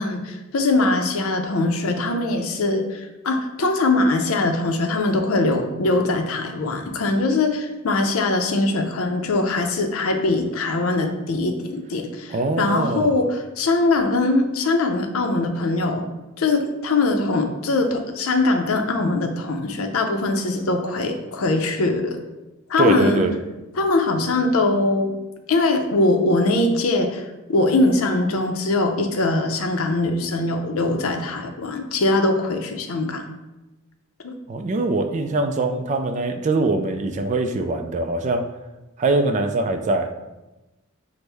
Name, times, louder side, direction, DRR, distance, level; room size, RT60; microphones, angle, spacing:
voice 1, 0.0-16.1 16.4-22.2 22.7-23.2 23.8-25.1 25.5-33.2 34.2-34.3, left 2 dB, 75° left, 5 dB, 0.5 m, -22 dB
voice 2, 12.3-13.1 22.8-23.3 34.5-38.4 39.0-40.1, right 2 dB, 35° right, 6 dB, 0.3 m, -22 dB
6.0 x 2.1 x 3.3 m, 1.0 s
head